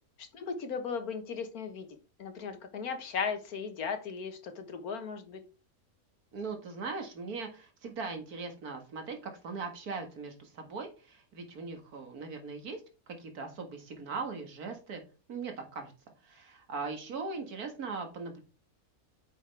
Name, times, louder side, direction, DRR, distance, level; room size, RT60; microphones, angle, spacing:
voice 1, 0.2-1.9 2.2-5.4, left 6 dB, 75° left, 7 dB, 1.7 m, -36 dB
voice 2, 6.3-12.8 13.1-15.0 15.3-15.9 16.2-18.4, right 4 dB, 80° right, 5 dB, 2.1 m, -39 dB
8.8 x 6.3 x 3.4 m, 0.33 s
omnidirectional pair, 1.6 m